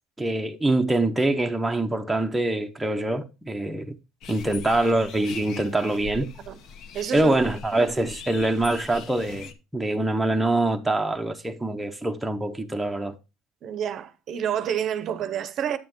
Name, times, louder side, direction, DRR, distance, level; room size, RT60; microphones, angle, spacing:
voice 1, 0.2-4.0 4.3-6.3 7.1-13.1, right 2 dB, 5° right, 0.6 m, -24 dB
sound 1, 4.2-9.5, left 5 dB, 50° left, 0.8 m, -41 dB
voice 2, 6.9-7.3 13.6-15.8, right 9 dB, 45° right, 0.6 m, -28 dB
8.6 x 7.3 x 2.9 m
cardioid pair, 140°, 0 cm